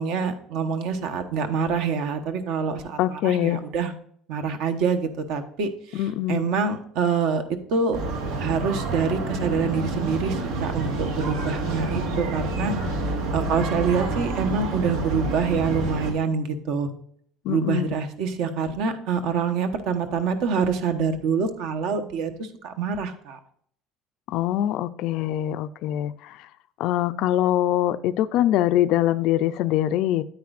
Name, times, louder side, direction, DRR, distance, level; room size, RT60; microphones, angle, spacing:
voice 1, 0.0-3.9 4.3-7.4 7.7-8.0 8.4-12.7 13.3-16.9 17.5-23.4, right 5 dB, 60° right, 9 dB, 1.1 m, -26 dB
voice 2, 3.0-3.6 5.9-6.5 17.4-18.0 24.3-26.5 26.8-30.2, left 13 dB, 55° left, 11 dB, 0.4 m, -23 dB
sound 1, 7.9-16.1, right 2 dB, 75° right, 2.1 m, -28 dB
9.4 x 9.0 x 2.4 m, 0.63 s
cardioid pair, 175°, 0 cm